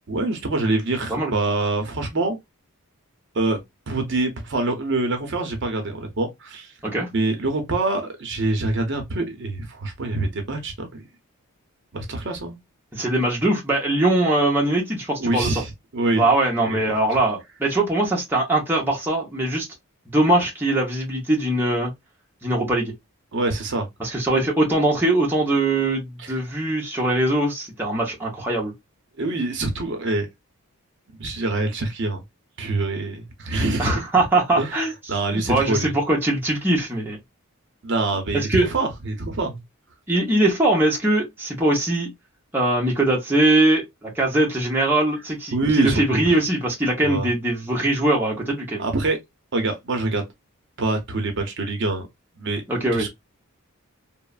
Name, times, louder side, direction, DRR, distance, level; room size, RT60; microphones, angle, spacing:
voice 1, 0.1-2.4 3.3-3.6 3.9-6.7 7.1-11.0 11.9-12.6 15.2-16.3 16.6-16.9 23.3-23.9 26.2-26.4 29.2-30.3 31.1-32.2 32.6-34.0 34.6-34.8 35.1-35.9 37.8-39.6 45.5-46.4 47.0-47.3 48.8-49.2 49.5-50.2 50.8-52.0 52.4-52.6 52.9-53.1, right 2 dB, 55° right, 0.7 m, -25 dB
voice 2, 12.9-15.6 16.1-19.7 20.1-21.9 22.4-22.9 24.0-28.7 33.8-34.9 35.3-37.2 38.3-38.7 40.1-42.1 42.5-48.9 52.7-53.1, right 1 dB, 10° right, 0.7 m, -21 dB
3.0 x 2.0 x 2.3 m
head